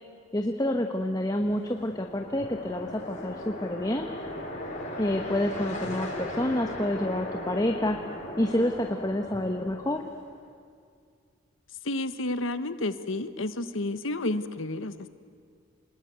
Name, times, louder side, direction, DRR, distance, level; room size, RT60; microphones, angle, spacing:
voice 1, 0.3-4.1 5.0-8.0 8.4-10.0, left 1 dB, 20° left, 5 dB, 1.1 m, -28 dB
sound 1, 1.3-10.4, left 1 dB, 40° left, 6.1 m, -38 dB
voice 2, 11.8-15.1, left 2 dB, 80° left, 12 dB, 1.2 m, -31 dB
28.0 x 20.0 x 9.4 m, 2.2 s
head